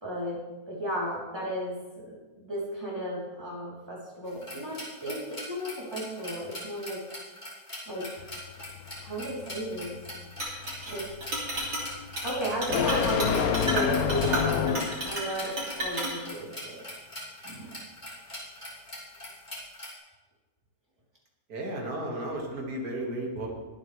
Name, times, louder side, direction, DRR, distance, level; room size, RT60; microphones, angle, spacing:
voice 1, 0.0-7.0 7.9-8.3 9.0-10.0 10.9-11.1 12.2-16.8 17.4-17.8, equal, 15° right, -6 dB, 3.5 m, -34 dB
sound 1, 4.2-19.9, left 1 dB, 25° left, 3.3 m, -43 dB
sound 2, 8.2-15.1, left 7 dB, 70° left, 1.2 m, -30 dB
Chink clink, 10.4-10.9 11.2-11.9 12.2-12.3 12.6-16.2, right 1 dB, 85° right, 3.5 m, -32 dB
voice 2, 21.5-23.5, right 1 dB, 70° right, -1 dB, 2.5 m, -34 dB
22.0 x 8.6 x 3.4 m, 1.2 s
omnidirectional pair, 1.7 m